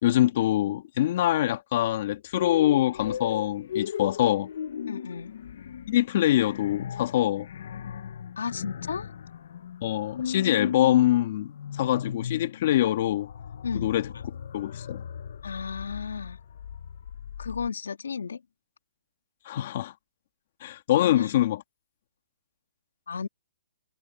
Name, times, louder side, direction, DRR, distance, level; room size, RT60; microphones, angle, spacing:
voice 1, 0.0-4.5 5.9-7.5 9.8-13.3 13.7-14.1 14.5-15.0 19.4-19.9 20.6-21.6, left 13 dB, 40° left, 2.2 m, -24 dB
sound 1, 2.3-17.7, left 8 dB, 55° left, 0.9 m, -37 dB
voice 2, 4.9-5.3 8.4-9.1 13.6-13.9 15.4-16.4 17.4-18.4 20.9-21.3 23.1-23.3, left 6 dB, 90° left, 2.4 m, -33 dB
hypercardioid pair, 165°, 0 cm